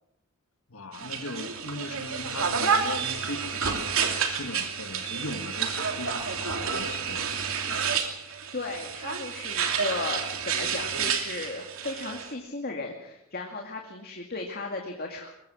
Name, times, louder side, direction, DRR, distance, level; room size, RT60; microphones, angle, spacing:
voice 1, 0.7-7.5, left 2 dB, 70° left, 1.8 m, -39 dB
sound 1, 0.9-12.3, right 6 dB, 65° right, 2.9 m, -30 dB
voice 2, 8.5-15.3, left 3 dB, 45° left, 2.4 m, -35 dB
22.5 x 21.5 x 6.3 m
head